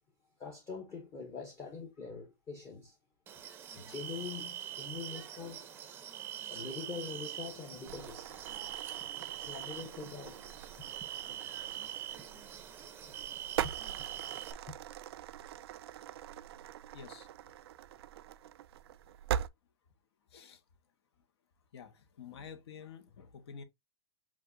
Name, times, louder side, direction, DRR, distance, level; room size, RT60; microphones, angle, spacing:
voice 1, 0.4-3.0 3.7-5.8 6.5-8.4 9.3-10.6 13.6-13.7 14.7-14.8, left 5 dB, 20° left, 0.8 m, -44 dB
sound 1, 3.3-14.5, right 10 dB, 15° right, 0.6 m, -43 dB
sound 2, 7.9-19.5, right 10 dB, 65° right, 0.4 m, -42 dB
voice 2, 16.9-17.3 20.3-20.6 21.7-23.6, left 6 dB, 70° left, 1.3 m, -49 dB
7.7 x 2.6 x 2.5 m
supercardioid pair, 165°, 14 cm